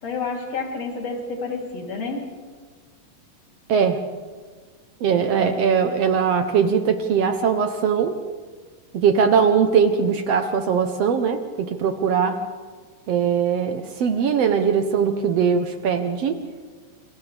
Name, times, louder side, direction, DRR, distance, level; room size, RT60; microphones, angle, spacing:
voice 1, 0.0-2.3, left 4 dB, 50° left, -1 dB, 4.3 m, -29 dB
voice 2, 5.0-8.2 8.9-12.4 13.1-16.4, right 6 dB, 65° right, 7 dB, 1.7 m, -20 dB
28.5 x 28.5 x 3.4 m, 1.5 s
omnidirectional pair, 3.6 m